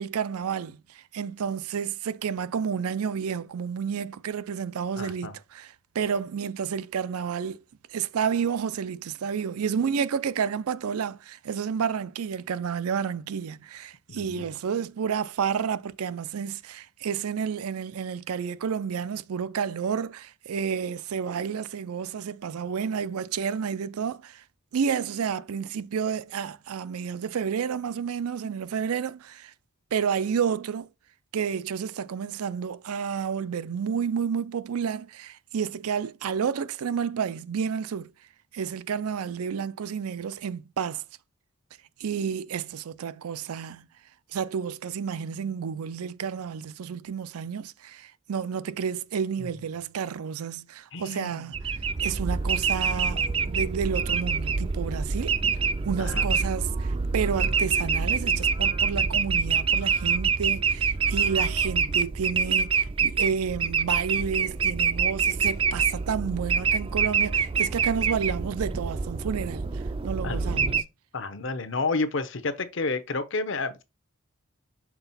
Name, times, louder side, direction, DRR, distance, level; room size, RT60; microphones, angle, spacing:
voice 1, 0.0-7.6 7.9-24.4 24.7-29.5 29.9-30.9 31.3-38.1 38.5-41.0 42.0-43.9 44.3-51.6 52.0-55.6 55.8-70.7, right 7 dB, 90° right, 0.4 m, -30 dB
voice 2, 5.0-5.4 14.1-14.5 50.9-51.4 56.0-56.3 70.2-70.9 71.1-73.8, left 3 dB, 60° left, 0.8 m, -31 dB
sound 1, 51.5-70.8, right 5 dB, 25° right, 0.3 m, -26 dB
6.0 x 3.9 x 4.1 m
head